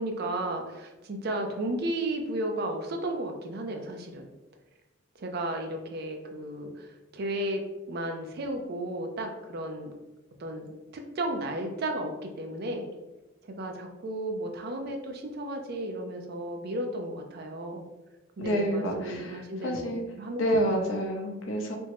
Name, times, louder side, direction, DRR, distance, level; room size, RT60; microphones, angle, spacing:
voice 1, 0.0-4.3 5.2-6.9 7.1-7.6 7.9-9.9 10.4-12.9 13.4-17.8 18.4-20.8, right 1 dB, 50° right, 4 dB, 0.4 m, -34 dB
voice 2, 18.4-20.0 20.4-21.7, equal, 70° left, 1 dB, 0.6 m, -28 dB
3.4 x 2.0 x 2.9 m, 1.1 s
head